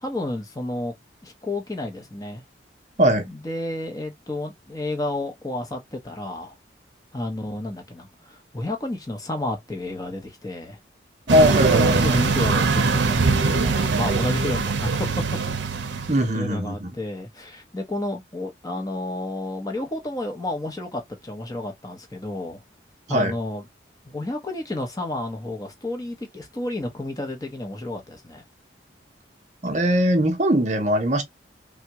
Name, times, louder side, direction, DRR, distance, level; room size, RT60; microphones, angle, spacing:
voice 1, 0.0-0.9 1.2-2.4 3.3-6.5 7.1-10.8 11.7-15.2 15.7-15.8 16.3-22.6 23.1-23.6 24.0-28.4, left 1 dB, 20° left, 0.7 m, -31 dB
voice 2, 3.0-3.3 11.3-12.2 16.1-16.9 23.1-23.3 29.6-31.2, equal, 40° right, 0.7 m, -20 dB
sound 1, 11.3-16.3, right 4 dB, 75° right, 0.6 m, -22 dB
3.4 x 2.2 x 2.8 m
head